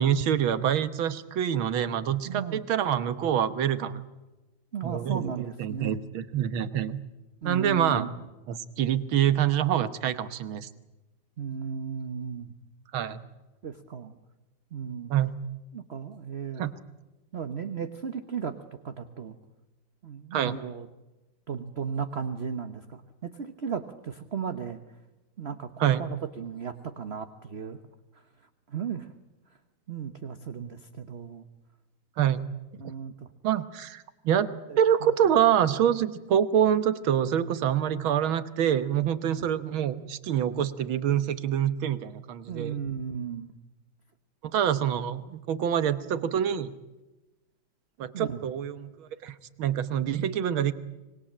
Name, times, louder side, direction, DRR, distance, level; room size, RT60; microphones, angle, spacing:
voice 1, 0.0-4.0 4.8-7.0 7.5-8.1 8.5-10.7 12.9-13.2 15.1-15.3 16.6-16.7 20.3-20.5 25.8-26.0 32.2-32.5 33.4-42.8 44.4-46.7 48.0-50.7, right 9 dB, 90° right, 13 dB, 1.9 m, -26 dB
voice 2, 2.2-2.6 4.7-6.0 7.4-8.1 11.4-12.5 13.6-14.1 14.7-15.1 15.7-16.6 17.3-19.4 20.0-20.9 21.5-24.8 25.4-27.8 28.1-28.2 28.7-29.1 29.9-31.5 32.8-33.3 34.7-35.1 39.4-39.5 42.5-43.5 48.1-48.4, right 6 dB, 40° right, 9 dB, 1.1 m, -35 dB
25.5 x 20.5 x 8.8 m, 1.1 s
omnidirectional pair, 2.2 m